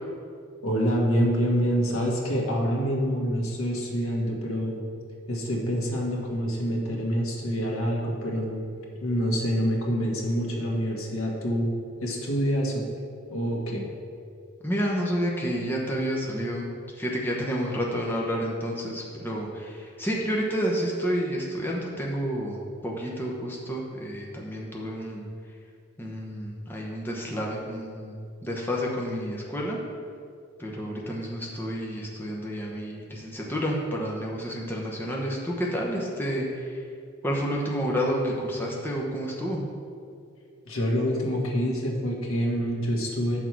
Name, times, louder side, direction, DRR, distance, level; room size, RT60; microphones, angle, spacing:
voice 1, 0.6-4.8 5.3-8.7 9.0-11.7 12.0-12.8 13.3-13.8 40.7-43.4, equal, 85° left, -1 dB, 1.5 m, -26 dB
voice 2, 14.6-25.2 26.0-29.8 30.6-36.8 37.2-39.7, equal, 10° left, -3 dB, 0.9 m, -30 dB
8.7 x 6.3 x 4.6 m, 2.3 s
head